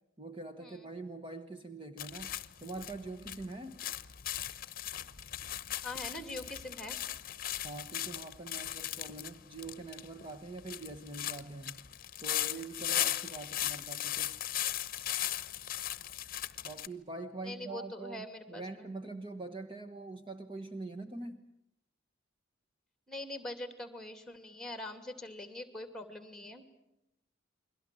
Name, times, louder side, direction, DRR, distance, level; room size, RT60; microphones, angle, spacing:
voice 1, 0.2-2.3 2.6-3.8 7.6-11.8 12.2-14.4 16.6-21.5, right 3 dB, 25° right, 6 dB, 1.2 m, -44 dB
sound 1, 2.0-16.9, left 12 dB, 45° left, 1.0 m, -38 dB
voice 2, 5.8-7.0 17.4-18.8 23.1-26.7, left 1 dB, 5° left, 9 dB, 2.6 m, -43 dB
30.0 x 22.5 x 7.6 m, 0.85 s
head